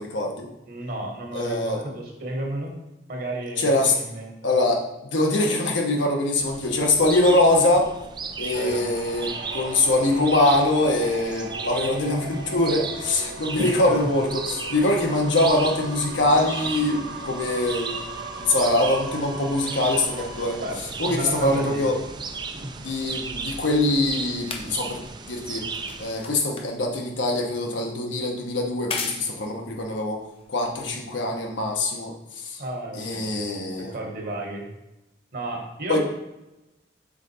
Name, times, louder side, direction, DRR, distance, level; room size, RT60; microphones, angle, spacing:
voice 1, 0.0-0.5 1.3-1.8 3.6-3.9 4.4-7.9 8.4-18.0 18.4-20.6 21.0-21.9 22.8-25.6 26.0-30.2 30.5-32.6 32.9-33.9 35.9-36.0, left 2 dB, 85° left, 0 dB, 1.1 m, -23 dB
voice 2, 0.6-2.7 3.1-4.3 8.5-8.8 13.5-14.1 20.6-21.9 22.5-22.7 32.6-33.5 33.8-34.6 35.3-36.0, right 1 dB, 55° right, 1 dB, 1.4 m, -33 dB
sound 1, 6.4-26.1, right 4 dB, 25° right, 0.4 m, -36 dB
sound 2, 8.5-20.7, right 2 dB, 75° right, 1.3 m, -37 dB
sound 3, 23.6-31.2 32.0-32.1, left 4 dB, 30° left, 0.6 m, -39 dB
5.9 x 3.8 x 4.3 m, 0.95 s
head